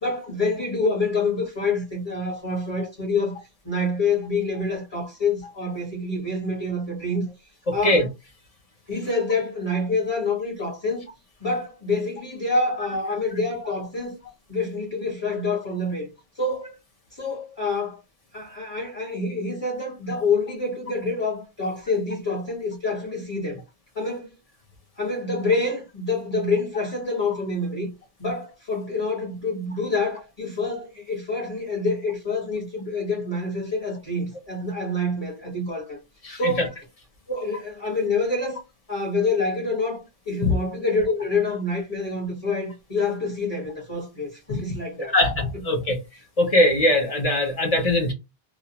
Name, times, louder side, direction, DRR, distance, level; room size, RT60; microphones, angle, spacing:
voice 1, 0.0-3.4 3.6-7.3 7.7-8.1 8.9-11.1 11.4-14.2 14.5-16.1 16.4-16.7 17.1-18.0 18.3-23.6 23.9-24.3 25.0-27.9 28.2-36.0 36.4-36.8 37.3-38.6 38.9-45.1 45.5-45.6, left 3 dB, 25° left, 1.0 m, -27 dB
voice 2, 7.7-8.0 36.2-36.4 40.4-40.5 44.5-44.6 45.1-46.0 46.4-48.1, left 1 dB, 40° left, 0.6 m, -21 dB
2.4 x 2.1 x 2.7 m
omnidirectional pair, 1.2 m